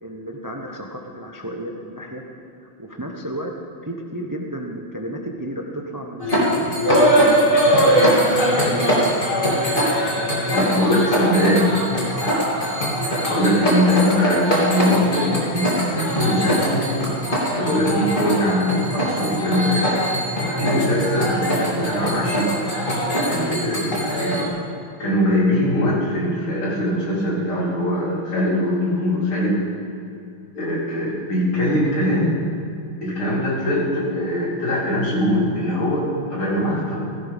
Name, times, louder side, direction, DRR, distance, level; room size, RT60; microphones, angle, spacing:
voice 1, 0.0-2.3 2.6-3.5 3.8-6.8 7.2-10.8 12.1-12.3 20.4-20.6 23.3-23.5 36.4-36.6, right 1 dB, 20° right, 1 dB, 0.6 m, -33 dB
sound 1, 6.2-24.5, equal, 25° left, 3.4 m, -21 dB
voice 2, 10.5-11.8 13.3-16.9 17.5-19.9 20.6-22.7 23.3-24.4 25.0-29.6 30.5-32.4 33.0-37.1, left 1 dB, 80° left, -7 dB, 4.9 m, -21 dB
17.0 x 16.5 x 3.7 m, 2.6 s
omnidirectional pair, 2.3 m